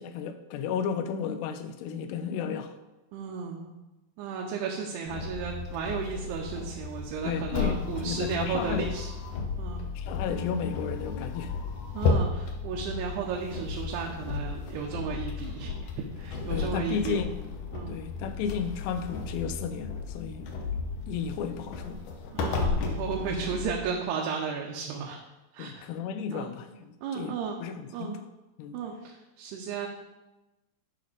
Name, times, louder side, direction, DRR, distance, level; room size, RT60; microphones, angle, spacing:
voice 1, 0.0-2.8 7.2-8.9 10.0-11.5 16.5-17.5 17.9-20.5 21.1-22.0 25.6-27.4 27.6-28.2 28.6-28.8, left 7 dB, 90° left, 2.8 m, -33 dB
voice 2, 3.1-3.7 4.2-9.1 9.6-9.8 11.9-17.3 17.7-18.0 22.3-25.2 25.5-25.8 26.3-26.6 27.0-27.6 27.9-28.2 28.7-29.9, right 6 dB, 80° right, 2.8 m, -34 dB
sound 1, 5.1-23.8, left 4 dB, 75° left, 1.9 m, -34 dB
10.5 x 4.0 x 5.0 m
omnidirectional pair, 4.7 m